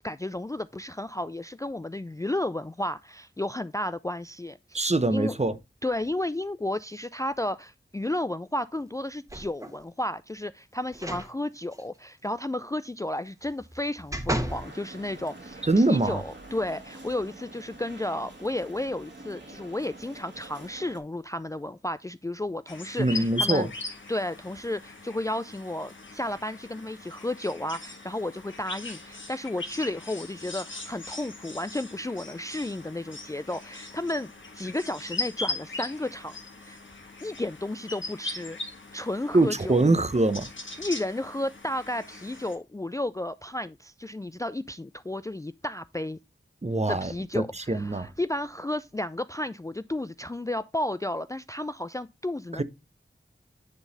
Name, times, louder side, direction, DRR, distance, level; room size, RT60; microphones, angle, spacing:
voice 1, 0.0-5.4 5.8-23.7 24.1-34.3 34.5-36.4 36.6-36.8 37.2-38.6 38.9-39.8 40.8-46.2 46.9-52.6, left 1 dB, 15° left, 0.3 m, -33 dB
voice 2, 4.7-5.6 15.6-16.2 23.0-23.7 39.3-40.5 46.6-48.1 52.5-52.6, right 2 dB, 35° right, 0.7 m, -24 dB
sound 1, 9.3-9.8 10.9-11.3 11.7-11.8 13.4-14.7 15.3-15.4, right 1 dB, 15° right, 1.3 m, -33 dB
sound 2, 14.5-21.0, right 2 dB, 65° right, 2.0 m, -46 dB
sound 3, 22.7-42.6, left 3 dB, 70° left, 1.4 m, -39 dB
9.7 x 3.9 x 4.0 m
wide cardioid pair, 40°, 20 cm